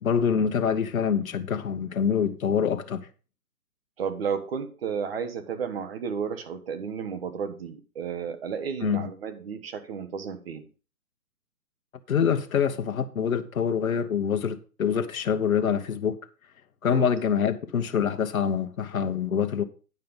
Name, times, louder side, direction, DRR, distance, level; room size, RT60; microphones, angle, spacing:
voice 1, 0.0-3.1 8.8-9.1 12.1-16.2 16.8-19.6, left 7 dB, 65° left, 1.2 m, -25 dB
voice 2, 4.0-10.7 16.9-17.1, right 6 dB, 40° right, 1.3 m, -32 dB
9.6 x 5.8 x 5.3 m
hypercardioid pair, 150°, 46 cm